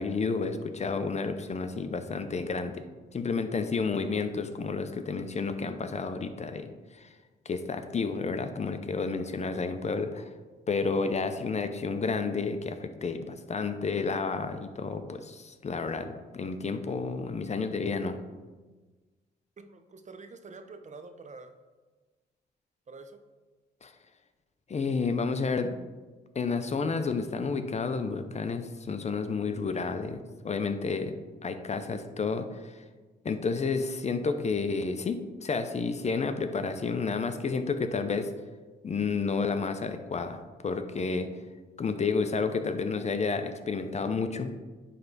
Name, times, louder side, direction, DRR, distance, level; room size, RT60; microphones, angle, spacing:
voice 1, 0.0-2.8 3.1-7.1 7.5-10.3 10.7-18.2 23.8-23.9 24.7-25.8 26.3-31.1 31.4-32.8 33.2-38.3 38.8-41.3 41.8-44.5, left 4 dB, 35° left, 8 dB, 0.6 m, -31 dB
voice 2, 19.6-21.5 22.9-23.2, right 3 dB, 40° right, 8 dB, 0.7 m, -47 dB
9.4 x 3.3 x 4.0 m, 1.3 s
cardioid pair, 70°, 20 cm